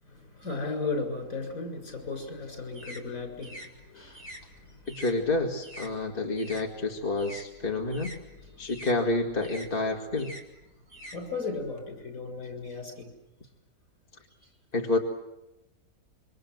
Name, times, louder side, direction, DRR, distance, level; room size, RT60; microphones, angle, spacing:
voice 1, 0.0-5.0 8.4-8.8 10.9-13.1 14.4-14.5, left 3 dB, 65° left, 4 dB, 7.1 m, -36 dB
sound 1, 1.9-6.7 7.0-11.8, equal, 40° right, 4.0 m, -47 dB
voice 2, 4.9-8.1 8.6-10.4 14.7-15.0, left 2 dB, 35° left, 2 dB, 2.2 m, -29 dB
27.0 x 25.0 x 7.9 m, 0.95 s
omnidirectional pair, 1.6 m